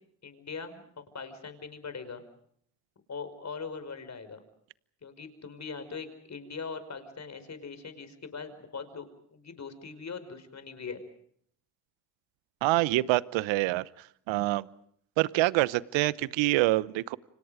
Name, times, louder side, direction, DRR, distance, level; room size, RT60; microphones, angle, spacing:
voice 1, 0.2-2.2 3.1-4.4 5.0-11.0, left 5 dB, 35° left, 5.3 m, -41 dB
voice 2, 12.6-13.9 14.3-14.7 15.2-17.2, right 19 dB, 70° right, 1.0 m, -26 dB
29.5 x 26.0 x 5.1 m
supercardioid pair, 70°, 47 cm